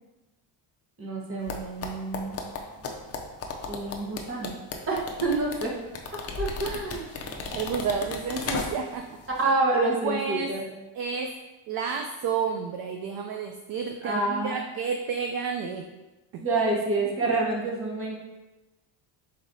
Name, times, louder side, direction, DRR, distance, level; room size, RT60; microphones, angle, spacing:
voice 1, 1.0-2.4 3.7-4.6 4.9-5.8 6.4-7.0 9.4-10.7 14.0-14.7 16.4-18.1, right 2 dB, 25° right, -2 dB, 1.1 m, -27 dB
sound 1, 1.5-9.0 9.3-9.5, left 4 dB, 30° left, 0.5 m, -35 dB
voice 2, 7.3-9.2 10.0-10.5 10.9-11.3 11.7-15.9 16.3-16.4, right 6 dB, 50° right, 4 dB, 0.5 m, -31 dB
4.8 x 4.1 x 2.7 m, 1.1 s
cardioid pair, 115°, 48 cm